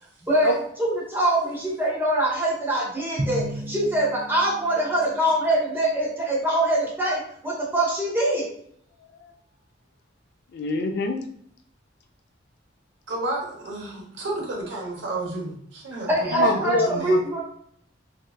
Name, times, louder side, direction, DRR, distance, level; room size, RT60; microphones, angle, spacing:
voice 1, 0.8-8.5 16.1-17.4, right 1 dB, 10° right, -6 dB, 0.9 m, -23 dB
Drum, 3.2-5.4, right 1 dB, 40° right, 0.4 m, -33 dB
voice 2, 9.0-9.3 10.5-11.2 16.3-17.2, left 3 dB, 60° left, 5 dB, 0.4 m, -26 dB
voice 3, 13.1-17.2, right 2 dB, 65° right, -2 dB, 0.9 m, -32 dB
2.7 x 2.2 x 2.2 m, 0.68 s
head